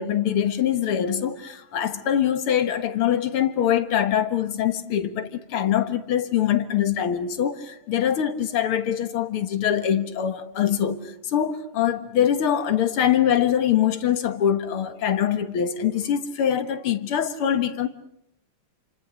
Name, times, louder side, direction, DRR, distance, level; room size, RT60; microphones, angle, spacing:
voice 1, 0.0-17.9, left 9 dB, 85° left, 2.4 m, -23 dB
28.5 x 26.0 x 6.3 m
omnidirectional pair, 2.3 m